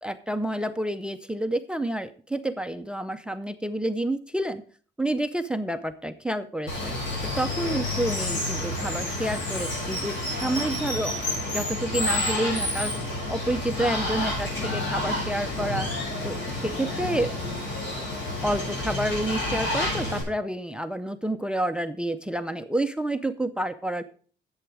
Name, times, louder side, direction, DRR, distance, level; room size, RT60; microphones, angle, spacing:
voice 1, 0.0-4.6 5.0-6.9 7.2-11.2 11.5-12.9 13.3-15.9 16.2-17.3 18.4-24.0, right 1 dB, 5° right, 12 dB, 0.5 m, -29 dB
Water, 6.7-20.2, left 1 dB, 75° left, 6.5 m, -29 dB
11.0 x 7.9 x 4.7 m, 0.41 s
cardioid pair, 165°, 20 cm